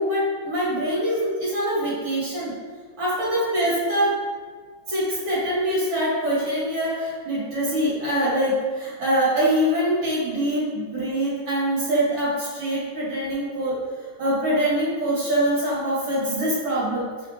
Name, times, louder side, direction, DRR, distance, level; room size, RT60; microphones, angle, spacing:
voice 1, 0.0-2.5 3.0-4.2 4.9-13.8 14.2-17.1, right 1 dB, 70° right, -8 dB, 2.3 m, -24 dB
5.0 x 2.4 x 3.3 m, 1.5 s
omnidirectional pair, 2.3 m